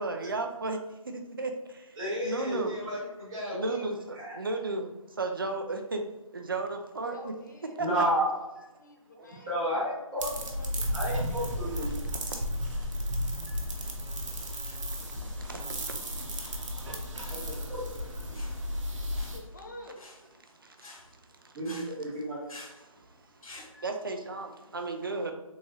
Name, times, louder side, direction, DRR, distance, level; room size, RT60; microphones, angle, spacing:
voice 1, 0.0-1.9 2.2-2.7 3.5-4.9 5.2-6.0 6.3-7.3 7.8-7.9 9.2-9.3 12.4-12.5 13.5-13.6 14.6-14.7 15.0-16.3 16.9-17.0 20.6-20.9 21.4-21.5 22.8-23.0 23.7-25.3, right 3 dB, 40° right, 5 dB, 0.4 m, -35 dB
voice 2, 1.9-3.9 4.1-4.4 7.8-8.3 9.5-10.3 10.9-11.9 17.3-17.8 21.5-22.4, equal, 10° right, -16 dB, 1.0 m, -32 dB
voice 3, 7.1-8.1 8.8-9.9 10.6-11.8 19.3-20.0, left 1 dB, 30° left, 2 dB, 0.5 m, -48 dB
sound 1, 10.2-19.4, equal, 60° right, 0.8 m, -34 dB
sound 2, 12.7-23.7, left 2 dB, 75° left, 1.0 m, -52 dB
3.5 x 3.2 x 2.7 m, 1.0 s
hypercardioid pair, 170°, 18 cm